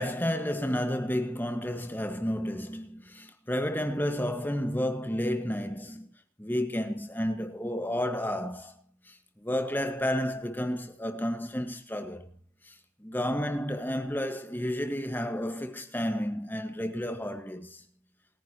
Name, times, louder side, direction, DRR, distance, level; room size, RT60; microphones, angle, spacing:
voice 1, 0.0-6.1 6.4-8.7 9.1-12.3 12.6-17.8, equal, 10° left, 1.7 m, -31 dB
28.0 x 10.5 x 3.1 m
head